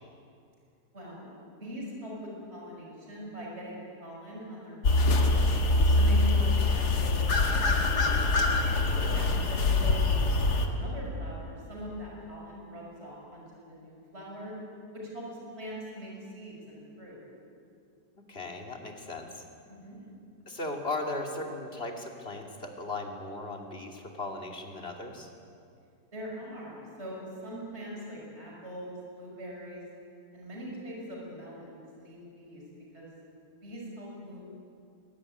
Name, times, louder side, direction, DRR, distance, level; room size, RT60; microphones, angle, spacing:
voice 1, 0.9-1.3 1.6-5.4 5.9-7.9 9.1-10.1 10.5-14.5 14.9-15.2 15.6-17.2 19.7-20.0 26.1-29.8 30.3-32.6 32.9-33.1 33.6-34.4, equal, 40° right, -3 dB, 6.5 m, -42 dB
sound 1, 4.8-10.7, left 2 dB, 70° left, 2.3 m, -24 dB
voice 2, 8.7-9.1 18.3-19.5 20.5-25.3, left 2 dB, 35° left, 2 dB, 2.9 m, -37 dB
22.0 x 19.0 x 9.7 m, 2.4 s
omnidirectional pair, 1.8 m